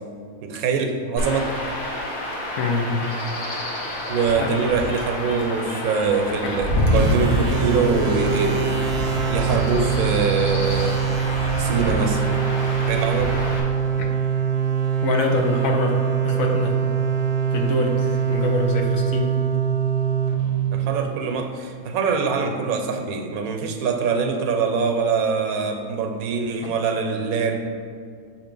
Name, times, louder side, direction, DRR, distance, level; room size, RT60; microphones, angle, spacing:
voice 1, 0.4-1.5 4.1-8.8 9.3-11.0 11.6-12.2 12.9-13.4 20.7-27.6, right 5 dB, 80° right, 4 dB, 1.1 m, -23 dB
Chirp tweet / Wind / Stream, 1.2-13.6, left 1 dB, 55° left, 1.2 m, -27 dB
voice 2, 2.6-3.0 4.4-4.6 6.4-6.6 14.0-14.1 15.0-16.8 17.5-19.4 26.6-26.7, left 3 dB, 70° left, 2 dB, 1.1 m, -25 dB
sound 1, 6.9-21.4, right 7 dB, 60° right, 0.8 m, -23 dB
7.3 x 2.8 x 5.2 m, 2.1 s
omnidirectional pair, 1.5 m